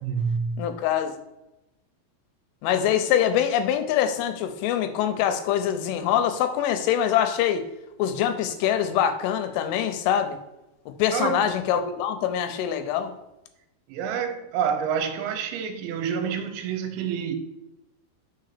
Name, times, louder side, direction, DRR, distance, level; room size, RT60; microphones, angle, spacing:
voice 1, 0.0-0.7 11.1-11.5 13.9-17.4, right 7 dB, 75° right, 2.8 m, -28 dB
voice 2, 0.6-1.1 2.6-7.7 8.0-10.4 11.0-13.1, left 9 dB, 80° left, 2.8 m, -24 dB
6.7 x 4.4 x 6.6 m
omnidirectional pair, 5.9 m